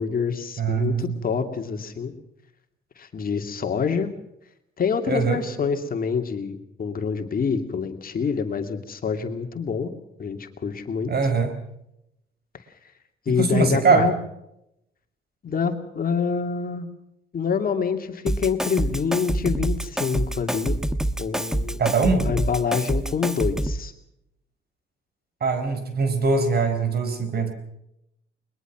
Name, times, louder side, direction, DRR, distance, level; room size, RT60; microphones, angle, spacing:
voice 1, 0.0-2.1 3.0-4.1 4.8-9.9 10.2-11.1 13.3-14.2 15.4-16.9 17.3-20.8 21.2-21.8 22.2-23.9, left 6 dB, 45° left, 6 dB, 2.6 m, -26 dB
voice 2, 0.6-1.3 5.1-5.4 11.1-11.5 13.4-14.1 21.8-22.2 25.4-27.5, right 4 dB, 55° right, 9 dB, 4.4 m, -22 dB
Drum kit, 18.3-23.9, right 1 dB, 5° right, 1.1 m, -26 dB
22.0 x 21.5 x 6.1 m, 0.82 s
cardioid pair, 90°, 20 cm